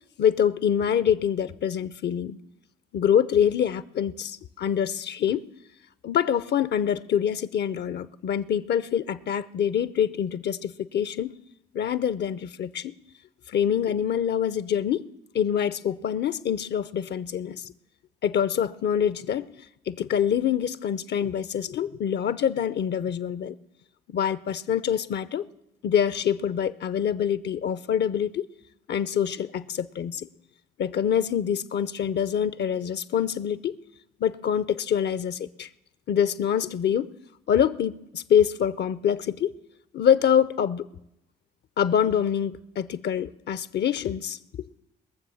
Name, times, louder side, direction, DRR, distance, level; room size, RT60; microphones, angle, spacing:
voice 1, 0.2-2.4 2.9-5.4 6.0-11.4 11.7-12.9 13.5-15.1 15.3-17.7 18.2-19.5 19.9-23.6 24.1-25.4 25.8-28.5 28.9-30.3 30.8-33.8 34.2-35.7 36.1-37.1 37.5-39.5 39.9-40.9 41.8-44.4, left 9 dB, 60° left, 0.7 m, -25 dB
21.0 x 7.2 x 7.1 m
hypercardioid pair, 55°, 20 cm